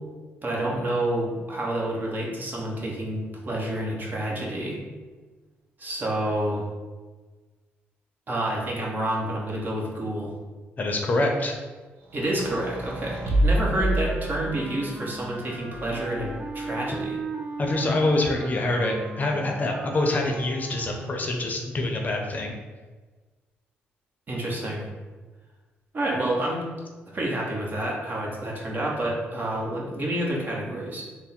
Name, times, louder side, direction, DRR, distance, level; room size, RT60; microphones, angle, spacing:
voice 1, 0.4-4.8 5.8-6.6 8.3-10.3 12.1-17.2 24.3-24.8 25.9-26.6 27.1-31.0, right 1 dB, 45° right, -3 dB, 1.1 m, -28 dB
voice 2, 10.8-11.6 17.6-22.5, left 2 dB, 40° left, 2 dB, 0.6 m, -25 dB
sound 1, 12.1-14.8 15.7-16.7, right 1 dB, 70° right, 0.8 m, -28 dB
Wind instrument woodwind instrument, 13.5-21.4, right 3 dB, 25° right, 0.5 m, -38 dB
3.4 x 2.1 x 4.3 m, 1.3 s
cardioid pair, 75°, 5 cm